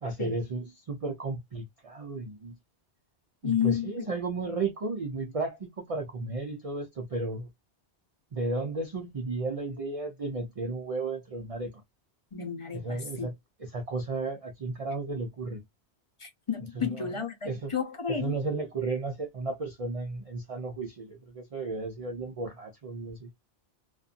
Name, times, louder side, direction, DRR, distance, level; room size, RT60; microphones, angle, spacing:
voice 1, 0.0-2.6 3.4-7.5 8.3-11.7 12.7-13.3 13.6-15.6 16.8-17.1 17.4-17.7 18.1-23.3, right 3 dB, 40° right, 0.5 m, -34 dB
voice 2, 3.4-4.1 12.3-13.3 16.2-18.4, left 8 dB, 30° left, 0.7 m, -31 dB
2.5 x 2.5 x 2.4 m
omnidirectional pair, 1.1 m